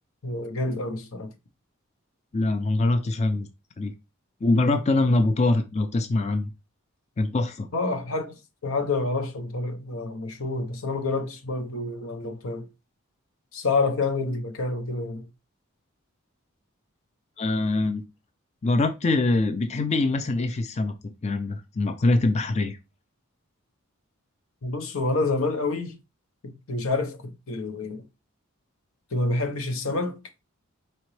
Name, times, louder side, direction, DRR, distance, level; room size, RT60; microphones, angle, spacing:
voice 1, 0.2-1.3 7.7-12.7 13.5-15.2 24.6-26.0 26.4-28.0 29.1-30.2, left 3 dB, 80° left, 0.8 m, -28 dB
voice 2, 2.3-3.5 3.8-3.9 4.4-6.5 7.2-7.7 17.4-18.0 18.6-22.8, left 2 dB, 35° left, 0.4 m, -24 dB
4.3 x 3.8 x 3.1 m
head